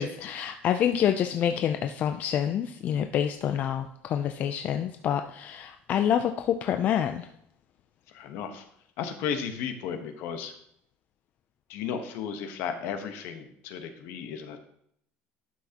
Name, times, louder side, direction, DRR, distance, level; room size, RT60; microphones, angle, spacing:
voice 1, 0.0-7.3, left 9 dB, 40° left, 7 dB, 0.4 m, -27 dB
voice 2, 8.1-8.6 9.0-10.5 11.7-14.6, left 7 dB, 65° left, 7 dB, 1.1 m, -34 dB
11.5 x 6.3 x 2.9 m, 0.71 s
cardioid pair, 150°, 4 cm